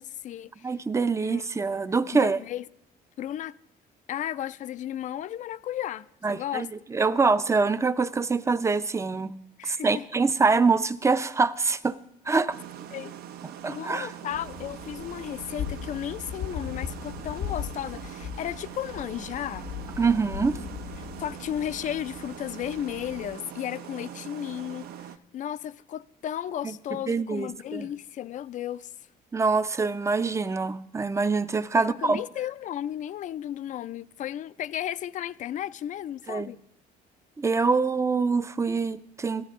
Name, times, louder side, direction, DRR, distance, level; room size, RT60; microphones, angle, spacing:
voice 1, 0.0-0.7 1.2-1.5 2.1-2.6 3.2-3.6 4.1-6.7 9.6-10.0 12.9-13.1 13.7-19.7 21.2-28.9 31.7-36.6, left 11 dB, 50° left, 0.4 m, -34 dB
voice 2, 0.6-2.4 6.2-9.3 9.6-12.0 12.3-12.6 13.6-14.1 20.0-20.6 26.6-26.7 27.1-27.9 29.3-32.2 36.3-36.5 37.4-39.5, right 4 dB, 15° right, 0.5 m, -25 dB
sound 1, 12.5-25.2, right 10 dB, 65° right, 0.6 m, -42 dB
sound 2, 14.3-23.3, left 8 dB, 90° left, 1.0 m, -39 dB
13.5 x 12.5 x 3.6 m
cardioid pair, 110°, 17 cm